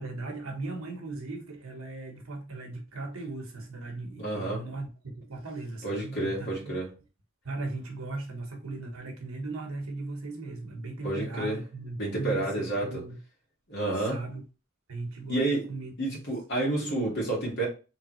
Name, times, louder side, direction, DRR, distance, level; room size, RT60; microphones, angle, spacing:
voice 1, 0.0-4.9 5.1-6.8 7.4-13.2 14.0-14.4 14.9-15.9 16.8-17.1, right 2 dB, 80° right, 1.2 m, -38 dB
voice 2, 4.2-4.6 5.8-6.9 11.0-11.6 12.0-13.0 13.7-14.2 15.3-15.7 16.0-17.7, right 2 dB, 55° left, 2.3 m, -29 dB
3.7 x 3.5 x 3.1 m
head